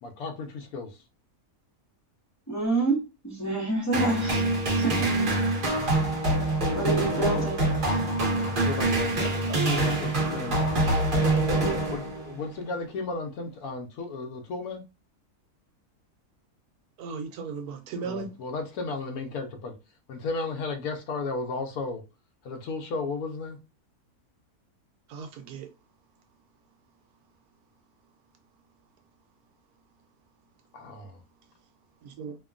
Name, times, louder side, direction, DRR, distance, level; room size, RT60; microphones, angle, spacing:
voice 1, 0.0-0.9 8.4-10.9 11.9-14.8 18.0-19.7 20.1-22.0 22.4-23.6 30.7-31.2, left 3 dB, 80° left, 1.1 m, -34 dB
voice 2, 2.5-3.0 3.2-4.5 4.7-4.9 6.7-7.6, right 3 dB, 20° left, 0.5 m, -27 dB
sound 1, 3.9-12.4, right 2 dB, 40° right, 0.9 m, -25 dB
voice 3, 17.0-18.3 25.1-25.7 32.0-32.4, right 5 dB, 85° right, 1.1 m, -36 dB
2.9 x 2.2 x 2.3 m
omnidirectional pair, 1.6 m